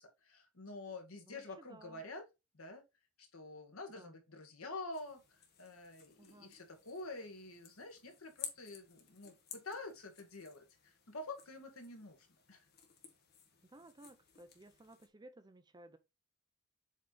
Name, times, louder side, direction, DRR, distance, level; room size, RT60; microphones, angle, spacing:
voice 1, 0.0-2.2 2.5-2.8 3.2-12.7, left 2 dB, 70° left, 1.7 m, -48 dB
voice 2, 1.2-2.0 3.9-4.2 6.2-6.6 13.7-16.0, right 2 dB, 20° right, 0.6 m, -58 dB
sound 1, 4.9-15.1, left 6 dB, 45° left, 1.5 m, -55 dB
7.4 x 3.4 x 3.9 m
head